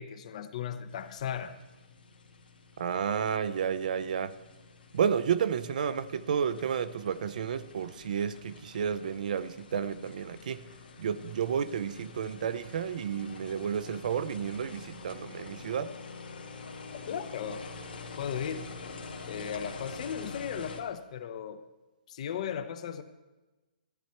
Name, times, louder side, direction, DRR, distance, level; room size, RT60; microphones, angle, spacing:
voice 1, 0.0-1.6 17.1-17.6 18.2-18.7 19.3-21.6 22.1-23.0, left 8 dB, 45° left, 10 dB, 0.8 m, -36 dB
sound 1, 0.9-20.8, left 4 dB, 90° left, 1.7 m, -47 dB
voice 2, 2.8-4.4 4.9-10.6 11.0-15.9, right 7 dB, 60° right, 14 dB, 0.6 m, -31 dB
13.0 x 9.5 x 4.5 m, 1.1 s
hypercardioid pair, 155°, 5 cm